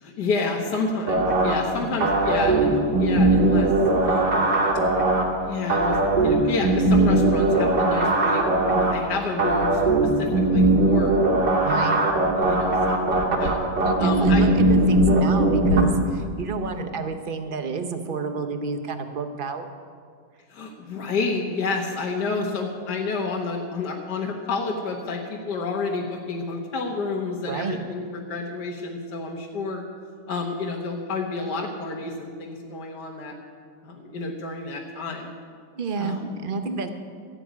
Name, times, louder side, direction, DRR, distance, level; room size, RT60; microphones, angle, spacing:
voice 1, 0.0-3.7 4.0-4.5 5.4-6.0 6.2-11.1 11.7-11.8 12.4-13.5 14.0-14.4 20.5-29.8 30.3-33.4 33.8-35.3 36.0-36.2, left 3 dB, 60° left, -1 dB, 1.7 m, -29 dB
sound 1, 1.1-15.8, right 2 dB, 65° right, 2.5 m, -20 dB
voice 2, 1.8-2.1 11.6-12.0 13.8-19.7 27.5-27.8 35.8-36.9, right 5 dB, 40° right, 7 dB, 0.8 m, -30 dB
14.0 x 8.1 x 9.4 m, 2.1 s
omnidirectional pair, 2.1 m